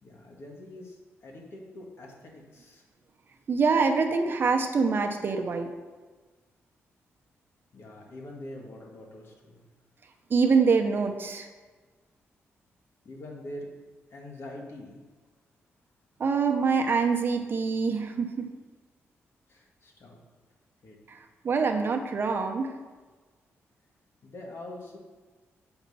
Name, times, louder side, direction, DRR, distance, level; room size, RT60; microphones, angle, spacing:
voice 1, 0.0-2.8 7.7-9.6 13.0-13.7 14.1-15.0 19.5-20.2 20.8-21.0 24.2-25.0, left 1 dB, 55° left, 0 dB, 1.8 m, -44 dB
voice 2, 3.5-5.7 10.3-11.5 16.2-18.5 21.1-22.8, right 5 dB, 45° right, 4 dB, 0.8 m, -25 dB
7.1 x 5.2 x 5.5 m, 1.3 s
cardioid pair, 100°, 5 cm